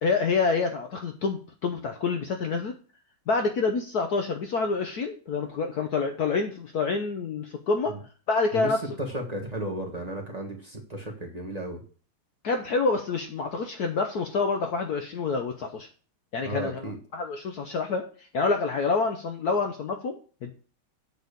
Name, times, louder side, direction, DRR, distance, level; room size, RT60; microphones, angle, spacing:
voice 1, 0.0-2.8 3.3-8.0 8.3-8.8 12.4-15.9 16.3-18.1 18.3-20.5, left 4 dB, 60° left, 5 dB, 1.1 m, -27 dB
voice 2, 8.5-11.8 16.4-17.0, right 1 dB, 20° right, 0 dB, 1.5 m, -34 dB
8.3 x 4.3 x 6.7 m, 0.40 s
omnidirectional pair, 2.2 m